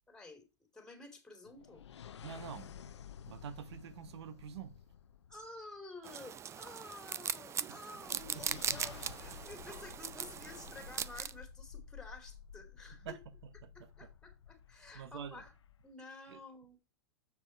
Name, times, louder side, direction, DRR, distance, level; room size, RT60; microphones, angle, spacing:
voice 1, 0.1-0.4 0.7-1.8 5.3-13.2 13.7-15.5 15.8-16.8, left 3 dB, 5° left, 2.7 m, -51 dB
sound 1, 1.4-5.8 8.0-15.9, left 8 dB, 90° left, 0.7 m, -53 dB
voice 2, 2.2-2.7 3.3-4.7 8.1-8.2 13.0-13.2 13.6-14.1 14.9-15.4 16.3-16.4, right 8 dB, 75° right, 1.1 m, -46 dB
sound 2, 6.0-11.3, right 8 dB, 20° right, 0.4 m, -40 dB
7.3 x 6.2 x 4.5 m
hypercardioid pair, 115°, 14 cm